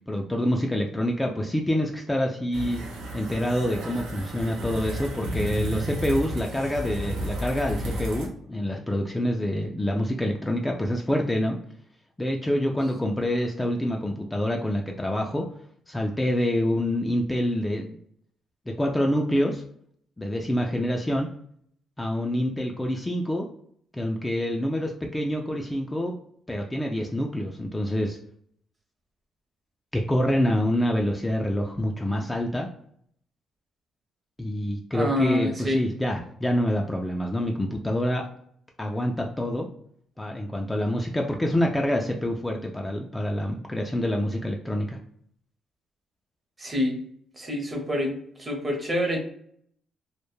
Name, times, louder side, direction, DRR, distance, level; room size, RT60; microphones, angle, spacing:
voice 1, 0.1-2.8 3.1-11.6 12.2-15.4 15.9-18.0 18.8-19.6 20.2-21.3 22.0-23.5 23.9-26.1 26.5-28.2 29.9-32.7 34.4-38.2 38.8-39.7 40.2-45.0, left 1 dB, 15° left, 1 dB, 0.3 m, -26 dB
sound 1, 2.5-8.3, right 1 dB, 85° right, 0.6 m, -32 dB
voice 2, 34.9-35.8 46.6-47.0 47.4-49.2, left 1 dB, 25° right, 2 dB, 0.7 m, -27 dB
2.2 x 2.0 x 3.0 m, 0.65 s
cardioid pair, 90°, 0 cm